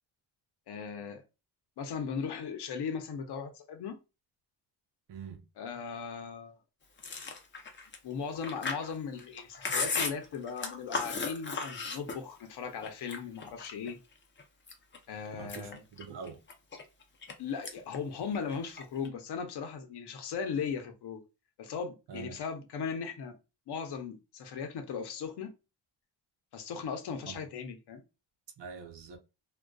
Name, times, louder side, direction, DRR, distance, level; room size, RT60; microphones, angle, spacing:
voice 1, 0.7-1.2 1.8-4.0 5.6-6.6 8.0-14.0 15.1-15.8 17.4-21.2 21.6-23.4 23.7-25.5 26.5-28.0, left 6 dB, 65° left, 0.7 m, -38 dB
voice 2, 5.1-5.4 15.4-16.4 22.1-22.4 27.2-27.5 28.6-29.2, right 6 dB, 70° right, 0.7 m, -44 dB
Chewing mastication, 7.0-12.5 12.8-13.9 14.4-15.0 15.3-17.3 17.6-18.0 18.2-19.1, left 4 dB, 25° left, 0.5 m, -36 dB
2.5 x 2.2 x 2.2 m
cardioid pair, 110°, 44 cm